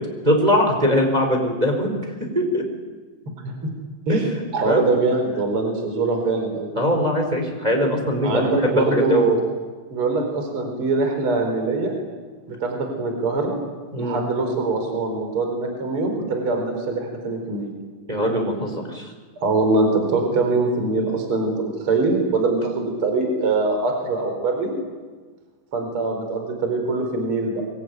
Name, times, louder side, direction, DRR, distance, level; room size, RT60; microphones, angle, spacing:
voice 1, 0.2-1.9 2.3-2.6 4.6-4.9 6.8-9.3 13.9-14.2 18.1-19.1, equal, 10° right, 2 dB, 3.9 m, -21 dB
voice 2, 4.5-6.7 8.2-9.4 9.9-11.9 12.5-13.6 14.0-17.7 19.4-24.7 25.7-27.6, right 3 dB, 30° right, 4 dB, 4.6 m, -23 dB
25.0 x 22.0 x 9.3 m, 1.4 s
omnidirectional pair, 5.6 m